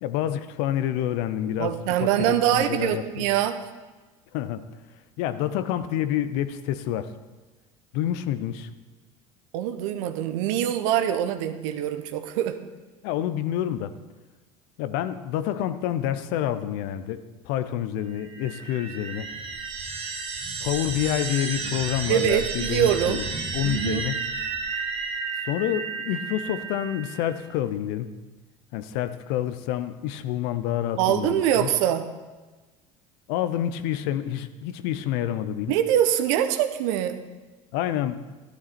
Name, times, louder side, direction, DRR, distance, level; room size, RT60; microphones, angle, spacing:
voice 1, 0.0-1.7 2.0-3.3 4.3-4.6 5.2-7.1 7.9-8.7 13.0-13.9 14.8-19.3 20.6-23.2 23.5-24.2 25.4-28.1 28.7-31.7 33.3-35.7 37.7-38.2, left 11 dB, 65° left, 12 dB, 0.8 m, -28 dB
voice 2, 1.6-3.7 9.5-12.6 22.1-23.2 23.6-24.1 31.0-32.1 35.7-37.2, right 11 dB, 70° right, 9 dB, 1.1 m, -24 dB
sound 1, 18.2-27.4, right 4 dB, 30° right, 2.1 m, -32 dB
13.5 x 11.5 x 4.3 m, 1.3 s
hypercardioid pair, 75°, 17 cm